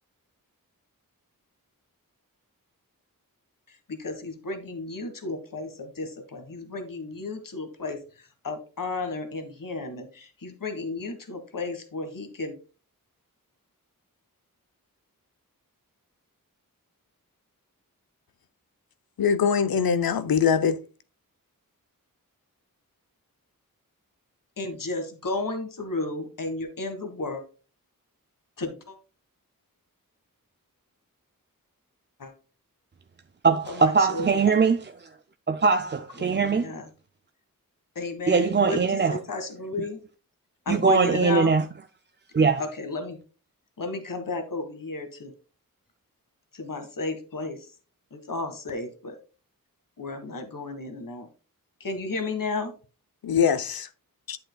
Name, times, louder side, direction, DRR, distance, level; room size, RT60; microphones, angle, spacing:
voice 1, 3.9-8.0 8.4-12.5 24.6-27.4 28.6-28.9 32.2-32.3 33.7-34.4 36.2-36.8 37.9-40.0 40.6-41.5 42.6-43.2 43.8-45.3 46.5-47.6 48.1-49.2 50.0-51.3 51.8-52.7, left 2 dB, 70° left, 1.7 m, -33 dB
voice 2, 19.2-20.8 53.2-53.9 54.3-54.4, left 7 dB, 90° left, 0.7 m, -22 dB
voice 3, 33.4-35.1 35.5-36.7 38.3-39.2 40.7-41.7 42.3-42.6, right 5 dB, 30° right, 0.5 m, -22 dB
8.8 x 7.7 x 2.3 m
wide cardioid pair, 70°, 35 cm